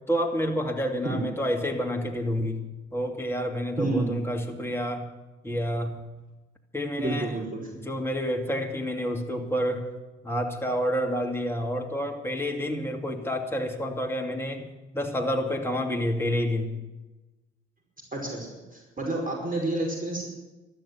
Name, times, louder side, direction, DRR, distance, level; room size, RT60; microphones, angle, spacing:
voice 1, 0.1-2.6 2.9-5.1 5.4-6.1 6.7-7.4 7.7-9.9 10.2-16.7, equal, 5° left, 1 dB, 2.6 m, -29 dB
voice 2, 3.8-4.1 7.0-7.6 18.1-20.3, right 2 dB, 25° right, 0 dB, 5.4 m, -29 dB
12.5 x 12.5 x 7.9 m, 1.1 s
figure-of-eight pair, 40°, 33 cm